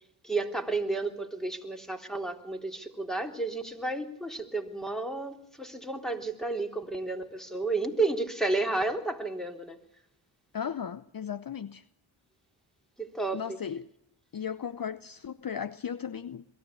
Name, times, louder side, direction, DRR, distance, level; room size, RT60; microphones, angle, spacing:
voice 1, 0.2-9.8 13.0-13.6, right 3 dB, ahead, 3.5 m, -32 dB
voice 2, 10.5-11.8 13.3-13.9 14.3-16.4, left 8 dB, 45° left, 0.9 m, -36 dB
23.0 x 14.0 x 8.4 m
cardioid pair, 45°, 48 cm